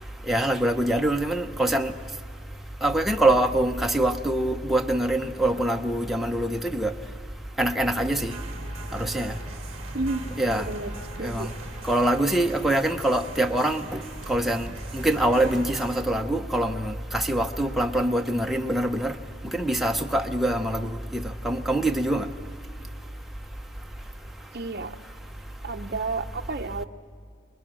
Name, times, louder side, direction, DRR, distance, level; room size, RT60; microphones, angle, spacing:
voice 1, 0.3-1.9 2.8-6.9 7.6-8.3 8.9-9.3 10.4-10.7 11.2-11.5 11.9-13.8 14.3-19.1 19.5-22.3, right 1 dB, ahead, 3 dB, 0.8 m, -24 dB
sound 1, 8.2-16.0, right 2 dB, 30° right, 2.8 m, -41 dB
voice 2, 9.9-10.9 11.2-11.5 24.5-25.0 25.6-26.8, right 3 dB, 50° right, 5 dB, 0.8 m, -31 dB
29.5 x 21.5 x 6.2 m, 2.2 s
head